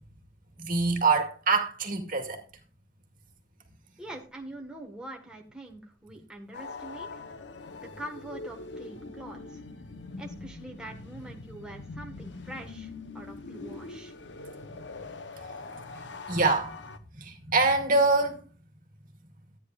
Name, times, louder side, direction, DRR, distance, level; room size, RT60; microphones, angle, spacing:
voice 1, 0.6-2.4 15.9-16.0 16.3-16.8 17.1-18.4, right 3 dB, 50° right, 2.1 m, -25 dB
voice 2, 4.0-7.2 8.0-9.6 10.2-14.1, right 1 dB, 5° right, 1.4 m, -44 dB
sound 1, 6.5-17.0, left 3 dB, 75° left, 0.9 m, -43 dB
13.5 x 9.8 x 2.4 m
head